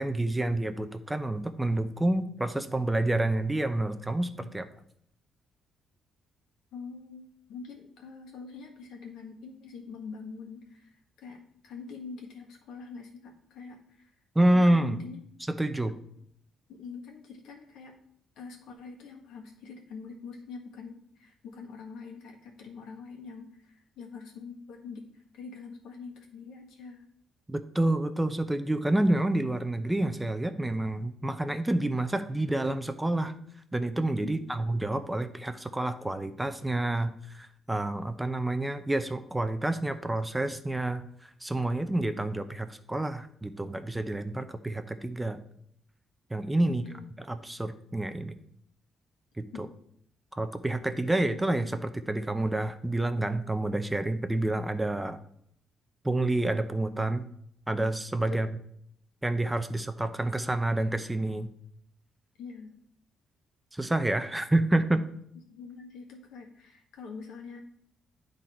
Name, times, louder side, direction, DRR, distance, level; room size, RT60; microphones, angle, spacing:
voice 1, 0.0-4.7 14.3-15.0 15.6-16.0 27.5-33.3 33.7-45.4 46.3-46.8 47.2-48.4 49.4-49.5 50.3-55.2 56.0-57.3 57.7-58.5 59.2-61.5 63.7-65.0, right 1 dB, 10° right, 9 dB, 0.6 m, -28 dB
voice 2, 6.7-14.1 14.5-15.2 16.7-17.9 18.4-27.1 34.2-34.7 46.7-47.1 49.5-49.6 58.3-58.5 62.4-62.7 65.5-67.6, left 4 dB, 85° left, 1 dB, 1.7 m, -45 dB
9.8 x 4.0 x 4.3 m, 0.68 s
cardioid pair, 90°, 0 cm